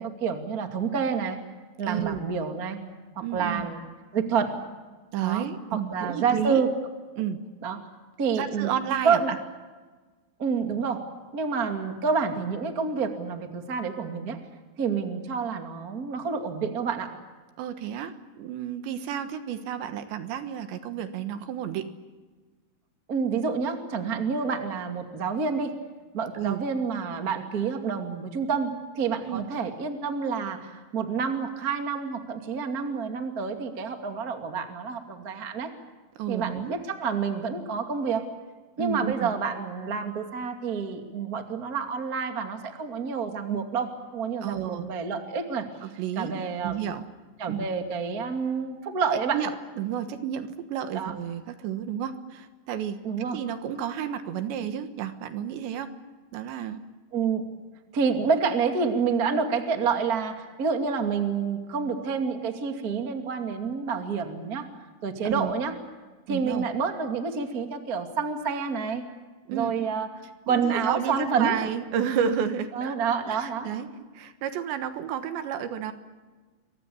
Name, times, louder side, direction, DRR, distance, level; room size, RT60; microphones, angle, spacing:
voice 1, 0.0-1.4 1.8-2.8 3.1-3.8 4.1-4.5 5.2-6.7 7.6-7.8 8.2-8.7 9.0-9.3 10.4-11.0 11.3-14.4 14.8-17.1 23.1-25.7 26.1-35.7 36.3-38.2 38.8-45.7 46.1-46.8 47.4-49.4 50.9-51.1 53.0-53.4 57.1-57.4 57.9-64.6 65.0-65.7 66.3-69.0 69.5-70.1 70.5-71.6 72.7-73.7, right 5 dB, 35° right, 5 dB, 1.4 m, -28 dB
voice 2, 1.9-2.2 3.2-3.7 5.1-6.7 7.2-7.4 8.4-9.4 17.6-21.9 26.3-26.6 29.3-29.5 36.2-36.7 38.8-39.3 44.4-44.9 45.8-47.0 47.5-47.7 49.3-53.0 53.3-55.9 56.3-56.8 65.2-65.5 66.3-66.7 69.5-69.9 70.5-72.9 73.3-73.9 74.1-75.9, right 9 dB, 70° right, 9 dB, 3.2 m, -31 dB
28.0 x 23.5 x 7.1 m, 1.3 s
omnidirectional pair, 5.9 m